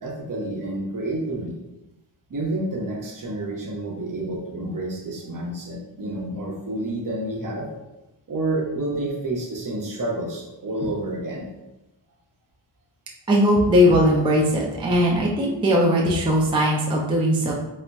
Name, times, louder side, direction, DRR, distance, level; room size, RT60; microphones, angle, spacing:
voice 1, 0.0-1.6 2.3-7.8 8.3-11.5, right 1 dB, 45° right, -1 dB, 0.7 m, -29 dB
voice 2, 13.3-17.5, equal, 15° right, -2 dB, 0.3 m, -19 dB
3.9 x 2.0 x 2.2 m, 0.97 s
wide cardioid pair, 105°, 44 cm